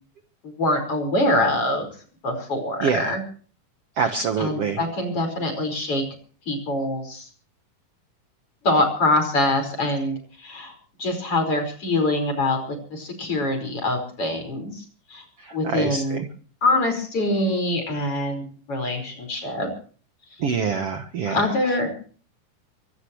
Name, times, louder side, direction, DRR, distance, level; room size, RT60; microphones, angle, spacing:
voice 1, 0.4-1.9 2.2-3.2 4.4-6.0 6.5-7.3 8.6-10.7 11.0-14.8 15.1-15.3 15.5-16.3 16.6-19.7 21.3-21.9, left 1 dB, 40° left, 6 dB, 5.8 m, -24 dB
voice 2, 2.8-3.1 4.0-4.8 15.4-16.0 20.4-21.4, right 6 dB, 55° right, 6 dB, 1.9 m, -25 dB
24.5 x 18.0 x 3.1 m, 0.41 s
omnidirectional pair, 3.8 m